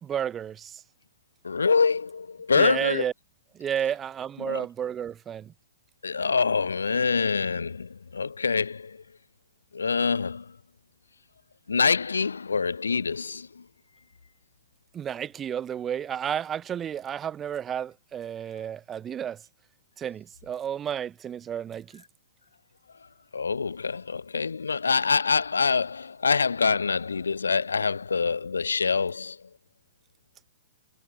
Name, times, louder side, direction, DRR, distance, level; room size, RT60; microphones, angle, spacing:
voice 1, 0.0-0.8 2.5-3.1 3.5-5.5 14.9-19.4 20.0-22.0, right 9 dB, 20° right, 2.2 m, -32 dB
voice 2, 1.4-3.1 4.4-4.6 6.0-9.0 9.7-10.5 11.7-13.6 23.3-29.4, left 5 dB, 85° left, 1.3 m, -25 dB
hypercardioid pair, 120°, 0 cm